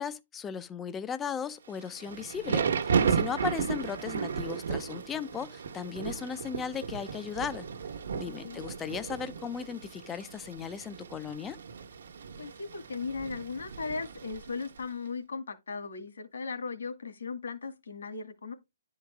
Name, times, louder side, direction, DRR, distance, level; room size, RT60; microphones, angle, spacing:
voice 1, 0.0-7.7 8.1-11.6, left 7 dB, 10° left, 0.4 m, -37 dB
Thunder / Rain, 1.7-14.8, right 6 dB, 60° right, 1.2 m, -34 dB
voice 2, 3.3-3.6 8.3-8.6 12.4-18.5, left 4 dB, 85° left, 1.9 m, -37 dB
11.0 x 4.7 x 3.4 m
hypercardioid pair, 175°, 0 cm